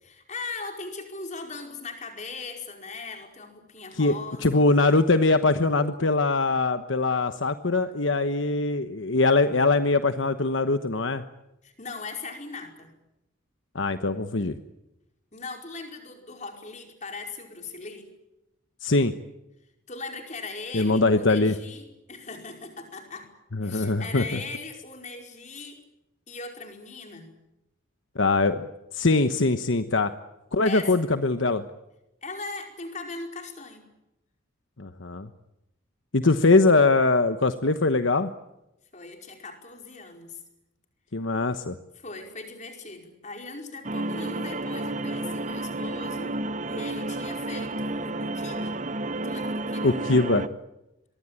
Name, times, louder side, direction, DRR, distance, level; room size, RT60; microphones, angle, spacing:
voice 1, 0.0-4.4 11.6-12.9 15.3-18.1 19.9-23.3 23.6-25.8 26.3-27.3 30.6-30.9 32.2-33.9 38.9-40.4 41.9-46.4 46.7-48.8 49.2-50.0, left 3 dB, 35° left, 3 dB, 5.0 m, -39 dB
voice 2, 4.4-11.2 13.7-14.6 18.8-19.1 20.7-21.6 23.5-24.4 28.1-28.7 28.9-30.1 30.5-31.6 34.8-35.3 36.1-38.3 41.1-41.8 49.8-50.5, left 3 dB, 65° left, 9 dB, 1.1 m, -22 dB
sound 1, 43.8-50.5, right 2 dB, 35° right, 1.0 m, -31 dB
25.0 x 22.5 x 8.9 m, 0.91 s
head